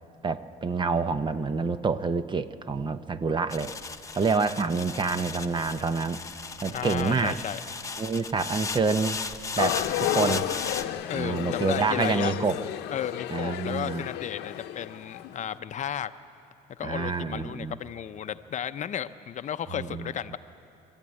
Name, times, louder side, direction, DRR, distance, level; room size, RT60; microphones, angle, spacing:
voice 1, 0.2-3.7 4.1-6.2 6.6-7.4 8.0-9.2 9.6-10.5 11.1-12.6 13.3-14.1 16.8-17.7 19.8-20.1, right 4 dB, 30° right, 12 dB, 0.7 m, -27 dB
sound 1, 3.5-10.8, left 4 dB, 20° left, 0.9 m, -36 dB
voice 2, 6.7-7.6 11.1-12.3 12.9-16.1 16.8-20.4, left 9 dB, 45° left, 11 dB, 0.6 m, -33 dB
sound 2, 9.6-15.5, left 12 dB, 85° left, 0.8 m, -32 dB
24.0 x 14.5 x 9.7 m, 2.7 s
cardioid pair, 110°, 17 cm